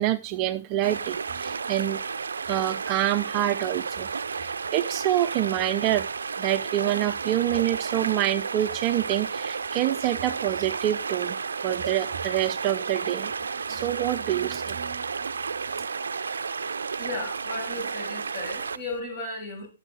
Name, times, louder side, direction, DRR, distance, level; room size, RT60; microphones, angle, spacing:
voice 1, 0.0-2.0 2.5-4.1 4.4-6.1 6.4-11.4 11.6-13.3 13.7-15.0, right 13 dB, 35° right, 10 dB, 0.5 m, -26 dB
sound 1, 0.8-19.0, right 5 dB, 85° right, 0.5 m, -32 dB
voice 2, 17.0-19.7, left 2 dB, 30° left, -2 dB, 7.3 m, -35 dB
11.5 x 7.1 x 4.0 m, 0.32 s
hypercardioid pair, 135°, 0 cm